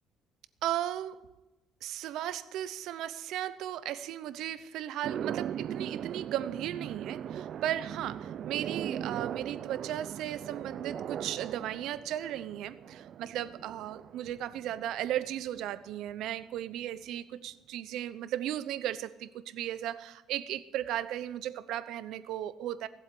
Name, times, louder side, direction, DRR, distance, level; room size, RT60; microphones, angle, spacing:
voice 1, 0.6-1.3 1.8-22.9, right 12 dB, 70° right, 14 dB, 0.8 m, -36 dB
sound 1, 5.0-15.4, right 9 dB, 50° right, 0.4 m, -39 dB
18.0 x 7.9 x 8.5 m, 1.1 s
cardioid pair, 145°, 0 cm